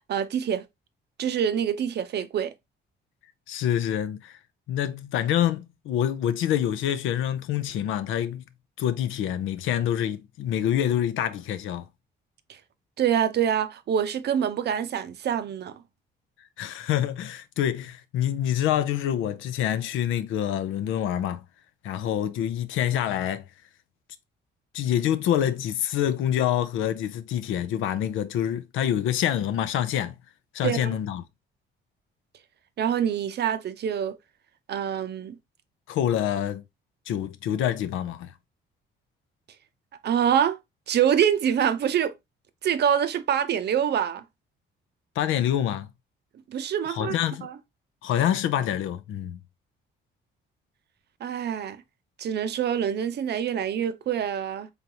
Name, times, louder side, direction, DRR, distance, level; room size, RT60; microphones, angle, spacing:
voice 1, 0.1-0.6 1.2-2.5 13.0-15.8 30.6-31.0 32.8-34.2 34.7-35.4 40.0-40.6 40.9-42.1 42.6-44.2 46.5-47.1 47.4-47.5 51.2-51.8 52.2-54.7, right 9 dB, 55° right, 0.6 m, -25 dB
voice 2, 3.5-4.4 4.7-8.4 8.8-11.9 16.6-21.4 21.8-23.4 24.7-30.2 30.5-31.2 35.9-36.6 37.1-38.3 45.2-45.9 46.9-47.5 48.0-49.4, left 10 dB, 80° left, 0.5 m, -26 dB
3.9 x 3.5 x 2.7 m
cardioid pair, 90°, 20 cm